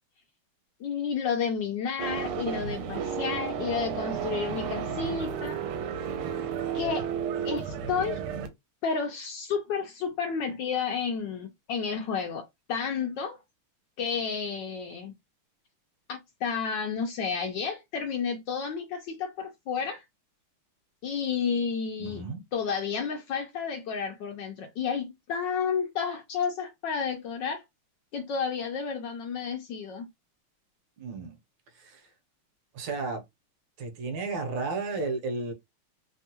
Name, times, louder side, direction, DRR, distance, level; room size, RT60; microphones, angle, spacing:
voice 1, 0.8-5.6 6.7-7.1 7.4-8.2 8.8-13.4 14.0-15.2 16.1-20.0 21.0-22.2 22.5-27.6 28.1-30.1, left 6 dB, 75° left, 1.1 m, -31 dB
sound 1, 2.0-8.5, right 7 dB, 85° right, 1.5 m, -32 dB
voice 2, 22.0-22.4 31.0-31.3 31.7-32.1 32.7-33.2 33.8-35.5, right 3 dB, 65° right, 1.4 m, -33 dB
3.5 x 2.2 x 2.9 m
omnidirectional pair, 2.4 m